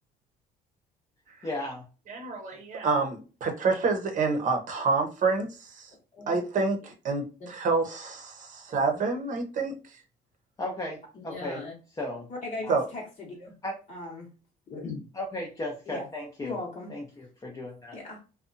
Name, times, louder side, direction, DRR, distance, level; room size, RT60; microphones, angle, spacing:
voice 1, 1.4-1.9 10.6-11.6 12.0-12.3 12.6-12.7 13.6-13.7 15.1-16.6 16.9-18.0, left 1 dB, 20° left, -1 dB, 0.6 m, -35 dB
voice 2, 2.1-5.9 6.3-9.7 12.7-12.9, right 4 dB, 50° right, 4 dB, 0.7 m, -28 dB
voice 3, 11.1-11.7 12.4-13.5 13.9-14.3 14.7-15.0 15.9-16.1 16.4-16.9 17.9-18.2, left 2 dB, 50° left, -3 dB, 0.9 m, -38 dB
2.6 x 2.2 x 2.5 m, 0.34 s
cardioid pair, 110°, 17 cm